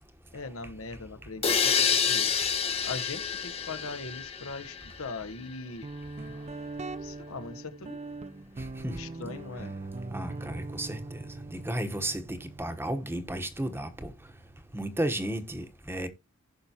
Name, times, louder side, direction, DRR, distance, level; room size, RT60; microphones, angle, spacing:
voice 1, 0.3-2.3 2.8-5.9 7.0-8.1 8.9-9.8, left 3 dB, 80° left, 0.9 m, -40 dB
sound 1, 1.4-5.2, left 7 dB, 30° left, 0.9 m, -28 dB
Guitar, 5.8-15.3, right 3 dB, 30° right, 0.5 m, -42 dB
voice 2, 10.1-11.2 11.5-14.1 14.7-16.1, right 1 dB, 10° right, 1.0 m, -33 dB
15.5 x 5.6 x 2.8 m
head